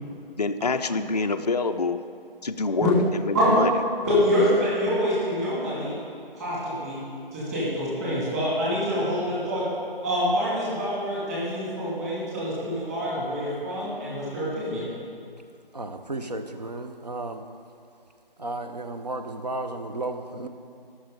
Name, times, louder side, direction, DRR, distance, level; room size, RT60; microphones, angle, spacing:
voice 1, 0.4-2.0 2.4-3.7, left 3 dB, 45° left, 8 dB, 0.4 m, -26 dB
voice 2, 4.0-6.0 6.3-7.0 7.3-9.6 10.0-14.9, equal, 15° right, -9 dB, 2.8 m, -26 dB
voice 3, 15.7-17.4 18.4-20.5, right 2 dB, 45° right, 6 dB, 0.7 m, -33 dB
18.5 x 6.3 x 4.0 m, 2.4 s
figure-of-eight pair, 155°, 29 cm